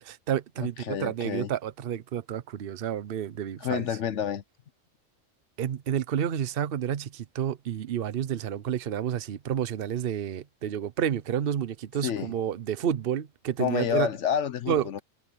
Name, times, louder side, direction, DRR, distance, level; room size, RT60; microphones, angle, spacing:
voice 1, 0.0-3.9 5.6-14.1 14.7-15.0, right 9 dB, 50° right, 0.9 m, -30 dB
voice 2, 0.6-1.5 3.6-4.4 12.0-12.3 13.6-15.0, left 8 dB, 65° left, 1.0 m, -29 dB
omnidirectional pair, 1.3 m